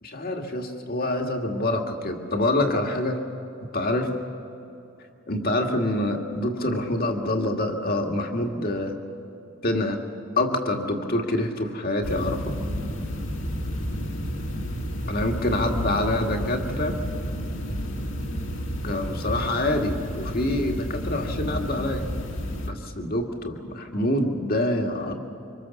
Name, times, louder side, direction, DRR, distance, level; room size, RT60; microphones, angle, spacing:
voice 1, 0.0-3.2 3.6-4.1 5.3-8.9 9.6-10.0 10.4-12.6 15.1-17.0 18.8-22.1 22.6-25.2, left 1 dB, 45° left, 3 dB, 2.0 m, -26 dB
sound 1, 12.0-22.7, equal, 70° left, 2.4 m, -31 dB
25.5 x 25.0 x 7.2 m, 2.8 s
head